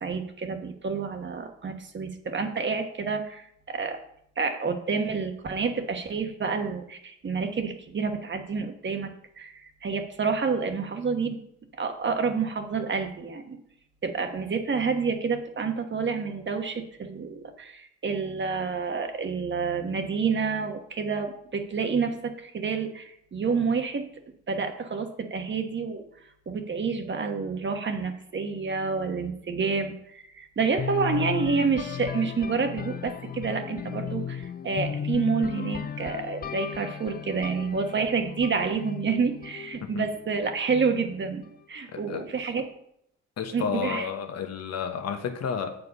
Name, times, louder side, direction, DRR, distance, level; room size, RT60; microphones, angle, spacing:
voice 1, 0.0-4.0 4.4-9.1 9.4-11.4 11.8-13.6 14.0-24.1 24.5-26.0 26.5-41.4 41.7-42.6 43.5-44.1, right 5 dB, 40° right, 5 dB, 1.2 m, -29 dB
sound 1, 30.8-40.6, left 8 dB, 30° left, 0.5 m, -35 dB
voice 2, 41.9-42.5 43.4-45.8, left 7 dB, 60° left, 6 dB, 1.2 m, -32 dB
8.1 x 4.8 x 5.3 m, 0.73 s
cardioid pair, 90°, 30 cm